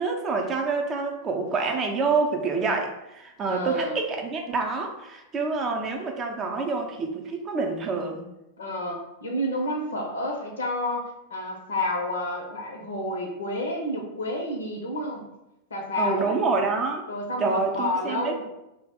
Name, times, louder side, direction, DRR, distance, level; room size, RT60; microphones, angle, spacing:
voice 1, 0.0-8.2 16.0-17.0 17.4-18.5, right 4 dB, 30° right, 3 dB, 0.5 m, -27 dB
voice 2, 3.5-4.0 8.6-15.2 15.7-16.4 17.1-18.5, left 1 dB, 80° left, 1 dB, 0.6 m, -30 dB
2.3 x 2.0 x 3.4 m, 0.90 s
hypercardioid pair, 95°, 0 cm